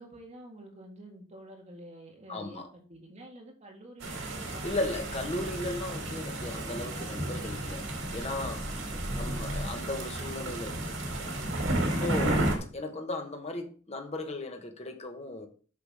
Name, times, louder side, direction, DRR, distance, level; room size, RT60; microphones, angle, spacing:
voice 1, 0.0-4.8 8.6-9.7, right 1 dB, 35° right, 1.8 m, -49 dB
voice 2, 2.3-2.7 4.6-8.7 9.1-11.4 11.8-12.5 12.7-15.5, left 2 dB, 35° left, 1.2 m, -36 dB
sound 1, 4.0-12.6, right 1 dB, 85° right, 2.1 m, -32 dB
8.4 x 6.0 x 3.5 m
head